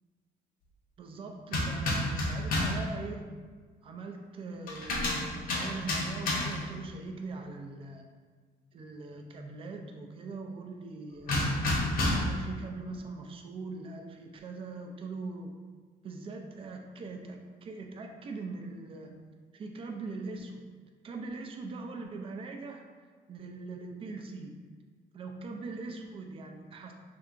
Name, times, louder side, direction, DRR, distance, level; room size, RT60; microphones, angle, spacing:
voice 1, 1.0-3.3 3.8-8.1 8.7-11.6 12.3-15.6 16.0-19.2 19.5-20.6 21.0-22.8 23.3-24.6 25.1-26.9, right 3 dB, 35° right, 3 dB, 0.3 m, -41 dB
sound 1, 1.5-2.9 4.7-6.7 11.3-12.4, left 1 dB, 60° left, 0.6 m, -30 dB
3.3 x 2.8 x 2.5 m, 1.5 s
cardioid pair, 140°, 17 cm